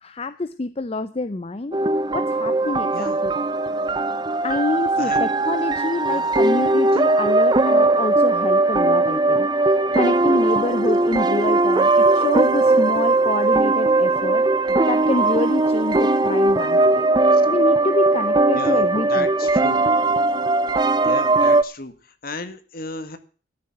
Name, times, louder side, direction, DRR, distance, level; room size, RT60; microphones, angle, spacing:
voice 1, 0.0-1.8 2.1-3.3 4.4-9.5 9.9-17.1 17.5-19.3, left 2 dB, 30° left, 12 dB, 0.5 m, -27 dB
sound 1, 1.7-21.6, right 2 dB, 25° right, 0.6 m, -19 dB
voice 2, 6.0-6.4 17.3-17.4 18.5-19.8 21.0-23.2, left 2 dB, 50° left, 10 dB, 1.7 m, -34 dB
13.0 x 7.7 x 8.6 m, 0.39 s
head